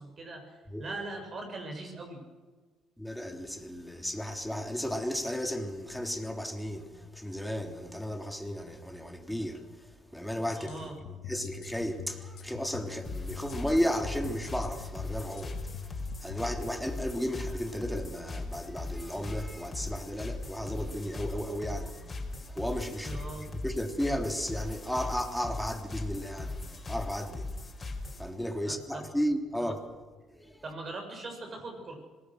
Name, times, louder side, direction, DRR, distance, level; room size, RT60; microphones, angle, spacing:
voice 1, 0.0-2.2 10.6-11.0 23.0-23.5 28.7-29.1 29.6-29.7 30.6-31.9, right 2 dB, 45° right, 7.6 m, -41 dB
voice 2, 3.0-9.6 10.1-15.9 16.2-27.5 28.2-29.8 30.4-30.6, equal, ahead, 3.3 m, -34 dB
sound 1, 10.5-16.5, left 8 dB, 70° left, 2.2 m, -44 dB
sound 2, 13.0-28.3, left 2 dB, 30° left, 4.9 m, -39 dB
26.0 x 19.5 x 6.6 m
supercardioid pair, 65°, 0 cm